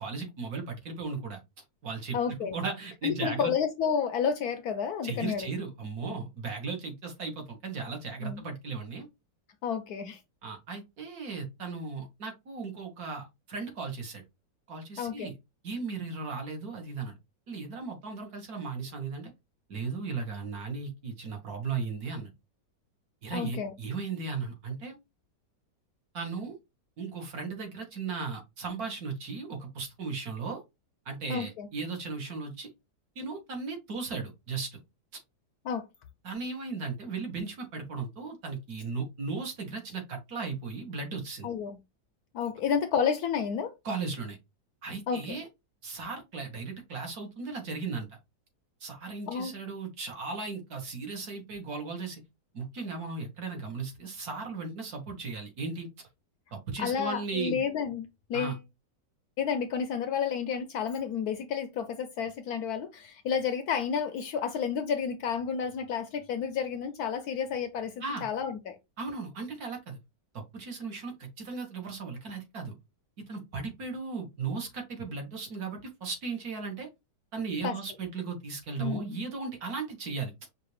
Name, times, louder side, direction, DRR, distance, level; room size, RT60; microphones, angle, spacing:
voice 1, 0.0-1.4 1.8-2.2 2.5-3.5 5.0-9.1 10.4-14.2 14.7-15.3 15.6-17.2 17.5-19.3 19.7-22.3 23.2-24.9 26.1-26.6 27.0-30.6 31.0-32.7 33.1-34.8 36.2-41.5 43.8-44.4 44.8-45.5 45.8-48.2 48.8-52.2 52.5-55.9 56.5-57.6 58.3-58.6 68.0-68.3 69.0-70.0 70.3-72.7 73.3-76.9 77.3-80.3, right 4 dB, 55° right, 1.6 m, -36 dB
voice 2, 2.1-2.6 3.0-5.5 6.1-6.2 8.2-8.4 9.6-10.2 15.0-15.3 23.3-23.7 31.3-31.7 35.6-35.8 41.4-41.8 42.3-43.7 45.1-45.4 49.3-49.5 56.8-58.6 59.4-67.9 68.2-68.8 77.6-77.8 78.8-79.2, left 7 dB, 70° left, 0.9 m, -31 dB
5.4 x 2.5 x 3.2 m
omnidirectional pair, 1.9 m